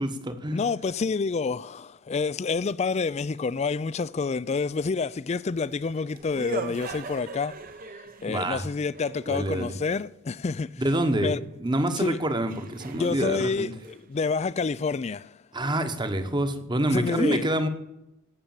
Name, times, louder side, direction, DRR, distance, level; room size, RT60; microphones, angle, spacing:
voice 1, 0.0-0.6 8.3-8.7 9.3-9.8 10.8-13.7 15.5-17.7, right 1 dB, 20° right, 1.1 m, -27 dB
voice 2, 0.5-7.5 8.2-10.8 11.2-11.4 12.0-12.2 12.9-15.4 16.9-17.5, left 4 dB, 30° left, 0.4 m, -28 dB
sound 1, 5.7-9.9 11.8-11.9 12.5-14.9, right 3 dB, 45° right, 0.8 m, -40 dB
16.5 x 6.8 x 7.3 m
head